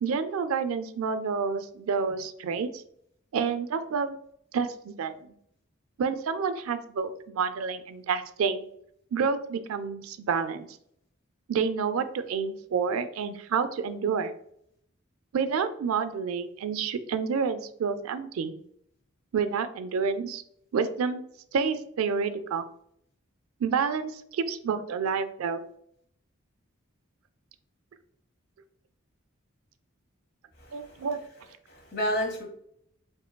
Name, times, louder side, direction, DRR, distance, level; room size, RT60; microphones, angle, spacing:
voice 1, 0.0-2.8 3.3-4.2 4.5-5.3 6.0-8.6 9.1-10.8 11.5-14.3 15.3-18.5 19.3-20.4 20.7-21.2 21.5-22.7 23.6-25.6 30.7-31.2, right 5 dB, 90° right, 11 dB, 0.4 m, -29 dB
voice 2, 30.6-31.1 31.7-32.4, equal, 50° left, 1 dB, 1.1 m, -31 dB
4.4 x 3.0 x 2.2 m, 0.69 s
head